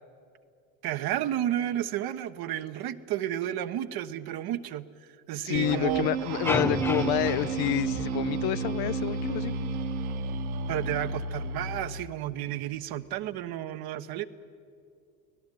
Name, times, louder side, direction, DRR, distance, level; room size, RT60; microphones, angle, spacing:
voice 1, 0.8-4.9 5.3-6.1 10.7-14.2, right 12 dB, 55° right, 10 dB, 1.2 m, -32 dB
voice 2, 5.4-9.7, left 16 dB, 55° left, 15 dB, 0.7 m, -29 dB
sound 1, 5.5-12.1, right 5 dB, 80° right, 1.1 m, -32 dB
sound 2, 6.4-8.7, left 2 dB, 5° left, 0.6 m, -33 dB
24.5 x 17.5 x 9.2 m, 2.4 s
hypercardioid pair, 75°, 43 cm